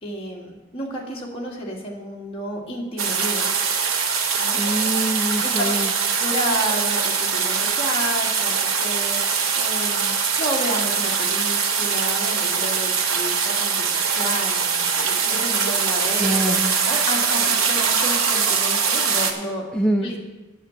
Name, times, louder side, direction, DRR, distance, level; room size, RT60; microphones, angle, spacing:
voice 1, 0.0-3.5 4.4-4.6 5.4-5.7 6.2-19.7 20.0-20.2, equal, 25° left, -3 dB, 2.0 m, -31 dB
sound 1, 3.0-19.3, right 6 dB, 85° right, 1.1 m, -22 dB
voice 2, 4.5-5.9 16.2-16.7 19.7-20.1, right 1 dB, 5° left, 3 dB, 0.4 m, -24 dB
9.3 x 6.9 x 7.1 m, 1.1 s
head